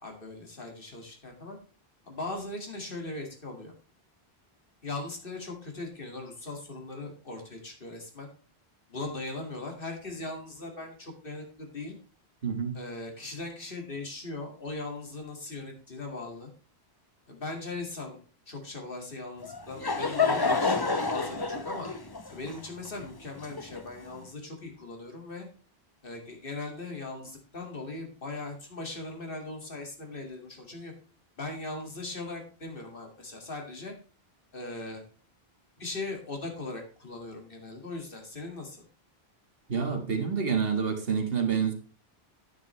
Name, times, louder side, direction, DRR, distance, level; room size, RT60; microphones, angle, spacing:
voice 1, 0.0-1.6 2.0-3.7 4.8-8.3 8.9-12.0 12.7-16.5 17.3-18.2 18.5-21.9 22.3-25.5 26.0-30.9 31.4-33.9 34.5-35.0 35.8-38.8, left 2 dB, 60° left, 2 dB, 2.4 m, -39 dB
voice 2, 12.4-12.8 39.7-41.7, right 6 dB, 65° right, 5 dB, 1.8 m, -28 dB
Laughter / Crowd, 19.4-24.1, left 4 dB, 25° left, 0.7 m, -29 dB
10.0 x 9.0 x 3.2 m, 0.38 s
omnidirectional pair, 1.1 m